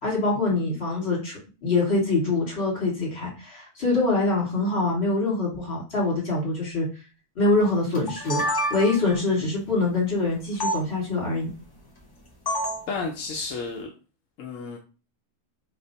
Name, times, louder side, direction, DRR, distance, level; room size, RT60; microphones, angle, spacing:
voice 1, 0.0-6.9 7.4-11.5, left 3 dB, 55° left, -3 dB, 2.1 m, -24 dB
sound 1, 7.9-9.2 10.6-10.8 12.5-12.9, equal, 25° left, 0.6 m, -27 dB
voice 2, 12.9-13.9 14.4-14.8, left 4 dB, 85° left, 1 dB, 1.0 m, -32 dB
4.3 x 3.2 x 2.7 m, 0.33 s
omnidirectional pair, 1.3 m